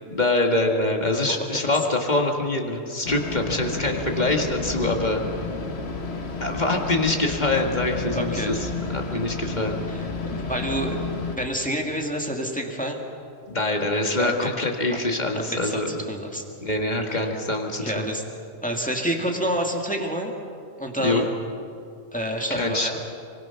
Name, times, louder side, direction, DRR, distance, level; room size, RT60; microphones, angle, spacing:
voice 1, 0.1-5.2 6.4-9.8 13.5-16.0 16.6-18.0 21.0-21.2 22.5-22.9, left 2 dB, 35° left, 2 dB, 2.0 m, -24 dB
sound 1, 3.0-11.4, left 4 dB, 55° left, 1.7 m, -31 dB
voice 2, 8.1-8.5 9.9-13.0 14.2-14.5 14.9-15.0 15.3-16.4 17.1-17.3 17.8-18.2 18.6-20.3 20.8-21.2 22.1-23.0, right 1 dB, 5° left, 1 dB, 2.0 m, -28 dB
24.5 x 23.5 x 5.8 m, 2.5 s
omnidirectional pair, 1.3 m